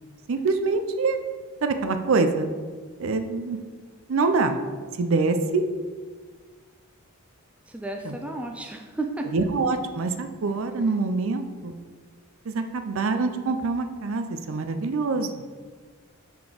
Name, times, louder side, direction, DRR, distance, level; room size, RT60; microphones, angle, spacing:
voice 1, 0.3-1.2 1.6-2.5 3.0-3.6 4.1-4.6 5.0-5.6 8.0-8.2 9.3-11.7 12.5-15.3, right 3 dB, 65° right, 8 dB, 0.5 m, -25 dB
voice 2, 7.7-9.3, right 2 dB, 5° right, 3 dB, 0.3 m, -33 dB
6.0 x 3.8 x 4.9 m, 1.5 s
head